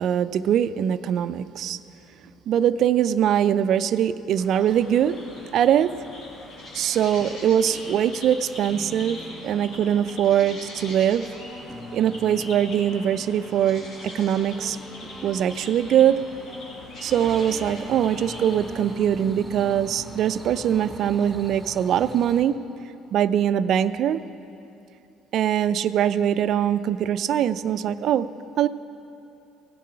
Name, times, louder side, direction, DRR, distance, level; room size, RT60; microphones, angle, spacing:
voice 1, 0.0-1.8 2.5-5.2 5.5-5.9 6.7-11.3 11.9-14.8 15.2-16.2 17.0-22.5 23.1-24.2 25.3-28.3 28.6-28.7, right 10 dB, 60° right, 14 dB, 0.4 m, -22 dB
sound 1, 4.4-18.9, left 1 dB, 65° left, 2.7 m, -42 dB
sound 2, 7.2-21.4, left 1 dB, 25° left, 1.1 m, -43 dB
sound 3, 17.0-22.4, right 1 dB, ahead, 1.3 m, -43 dB
16.5 x 7.4 x 5.7 m, 2.8 s
supercardioid pair, 80°, 0 cm